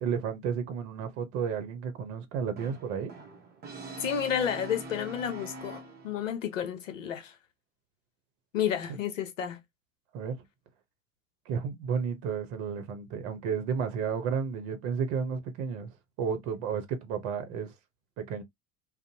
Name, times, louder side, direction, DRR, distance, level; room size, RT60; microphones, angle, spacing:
voice 1, 0.0-3.1 10.1-10.4 11.5-17.7 18.2-18.4, right 6 dB, 55° right, 0.8 m, -32 dB
Brass instrument, 2.6-6.4, right 2 dB, 25° right, 0.8 m, -43 dB
voice 2, 4.0-7.4 8.5-9.6, left 9 dB, 80° left, 0.7 m, -31 dB
2.5 x 2.1 x 2.7 m
hypercardioid pair, 80°, 38 cm